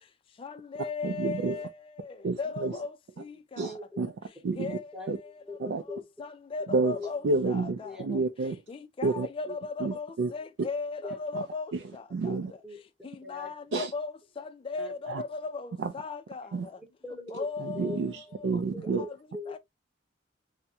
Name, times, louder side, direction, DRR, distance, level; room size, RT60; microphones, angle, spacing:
voice 1, 0.4-1.7 2.4-2.9 3.6-3.7 4.6-4.8 6.2-7.9 8.7-10.1 10.3-11.7 13.3-14.1 14.7-15.7 15.9-16.4 17.3-18.0, left 4 dB, 30° left, 0.3 m, -36 dB
voice 2, 1.0-1.6 2.2-2.7 3.6-4.1 4.4-4.8 5.1-5.2 5.6-5.8 6.7-7.0 7.2-8.6 9.0-9.3 9.8-10.3 11.3-11.4 12.1-12.5 13.7-13.9 15.1-15.2 15.8-15.9 16.5-16.7 17.6-19.0, right 3 dB, 75° right, 0.4 m, -29 dB
voice 3, 3.6-4.1 4.4-6.0 6.9-7.1 7.8-8.0 9.4-9.5 10.4-10.5 11.0-11.2 12.6-12.9 13.2-13.8 14.8-15.2 16.8-17.5 17.7-18.0 18.7-19.6, left 2 dB, 5° right, 0.8 m, -42 dB
3.5 x 2.1 x 2.7 m
head